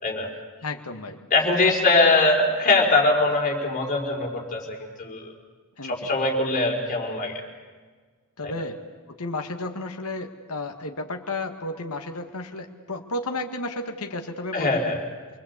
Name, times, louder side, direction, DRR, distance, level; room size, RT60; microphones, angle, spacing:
voice 1, 0.6-1.2 5.8-6.1 8.4-8.8 9.1-14.8, left 2 dB, 80° left, 4 dB, 2.0 m, -33 dB
voice 2, 1.3-5.3 5.8-7.3 8.4-8.5 14.5-15.0, left 2 dB, 35° left, 0 dB, 5.1 m, -22 dB
28.0 x 21.5 x 8.4 m, 1.5 s
head